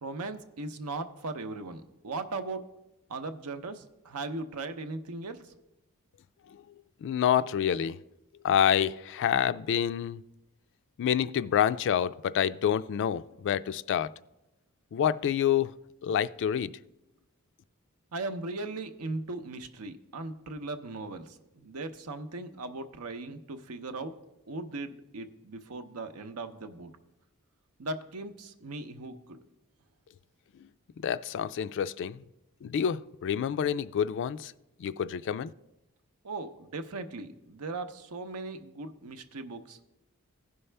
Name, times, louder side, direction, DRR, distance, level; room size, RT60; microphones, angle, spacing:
voice 1, 0.0-2.6 3.1-3.8 4.1-5.4 18.1-21.2 21.6-24.1 24.5-26.9 27.8-29.1 36.2-39.8, right 2 dB, 80° right, 0.7 m, -38 dB
voice 2, 7.0-8.0 8.4-10.2 11.0-14.1 14.9-15.7 16.0-16.7 31.0-32.2 32.6-34.5 34.8-35.5, left 9 dB, 55° left, 0.3 m, -27 dB
16.5 x 5.5 x 3.3 m
head